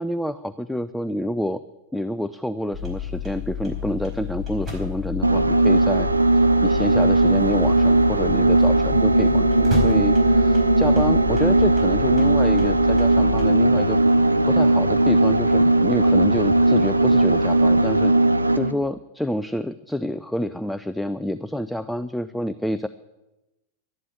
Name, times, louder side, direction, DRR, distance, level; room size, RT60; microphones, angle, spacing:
voice 1, 0.0-1.6 1.9-6.1 6.3-14.0 14.5-18.1 18.6-22.9, equal, ahead, 13 dB, 0.4 m, -28 dB
sound 1, 2.7-13.5, left 7 dB, 20° right, 4.4 m, -31 dB
sound 2, 5.2-18.7, right 2 dB, 80° right, 0.7 m, -18 dB
sound 3, 6.4-17.9, left 4 dB, 60° left, 1.4 m, -38 dB
12.0 x 11.0 x 8.6 m, 1.0 s
figure-of-eight pair, 90°, 0 cm